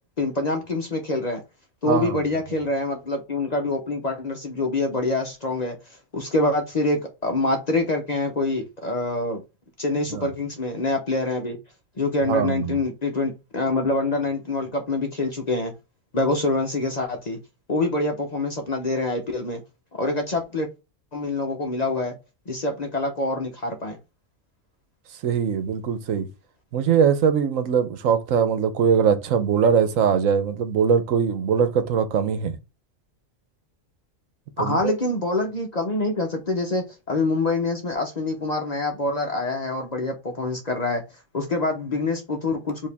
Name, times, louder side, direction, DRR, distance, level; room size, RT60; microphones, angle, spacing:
voice 1, 0.2-1.4 1.8-5.8 6.1-9.4 9.8-11.6 12.0-15.7 16.1-17.4 17.7-19.6 20.0-20.7 21.1-22.1 22.5-24.0 34.6-41.0 41.3-42.9, left 2 dB, 40° left, 0.8 m, -25 dB
voice 2, 1.9-2.2 10.1-10.3 12.3-12.8 25.2-26.3 26.7-32.6 34.6-34.9, right 7 dB, 75° right, 1.1 m, -21 dB
4.8 x 2.8 x 3.3 m
omnidirectional pair, 1.4 m